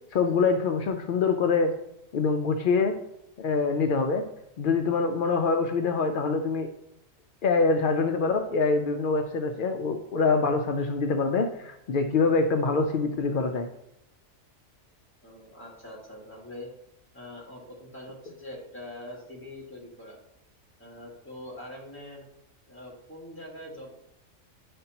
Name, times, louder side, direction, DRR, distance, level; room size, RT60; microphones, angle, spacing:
voice 1, 0.1-1.7 2.1-3.0 3.4-4.3 4.6-6.7 7.4-13.7, left 4 dB, 70° left, 5 dB, 0.5 m, -25 dB
voice 2, 15.2-16.7 17.1-20.2 20.8-22.2 22.7-23.9, left 1 dB, 10° left, -5 dB, 1.8 m, -43 dB
9.4 x 5.2 x 2.9 m, 0.81 s
omnidirectional pair, 1.4 m